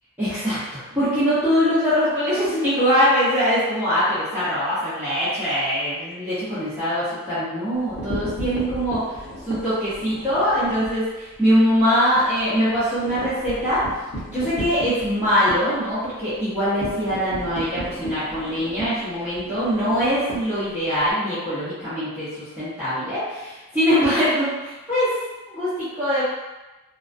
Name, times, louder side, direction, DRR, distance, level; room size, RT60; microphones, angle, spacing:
voice 1, 0.2-9.2 9.5-13.8 14.3-25.2 25.5-26.2, equal, 10° right, -15 dB, 0.7 m, -22 dB
sound 1, 7.7-11.0 11.3-11.5 11.8-11.9 12.2-21.1, right 1 dB, 75° left, 0.9 m, -34 dB
2.3 x 2.2 x 2.4 m, 1.1 s
head